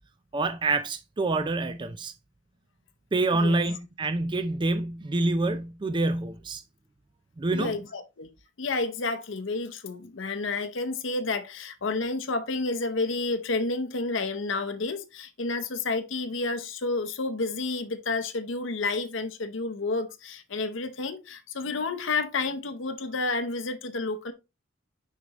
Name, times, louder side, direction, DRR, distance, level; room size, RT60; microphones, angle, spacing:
voice 1, 0.3-2.1 3.1-6.6 7.4-7.8, right 2 dB, 25° right, 0.4 m, -27 dB
voice 2, 7.5-8.3 8.6-24.3, left 3 dB, 70° left, 0.8 m, -30 dB
6.5 x 5.1 x 2.9 m
head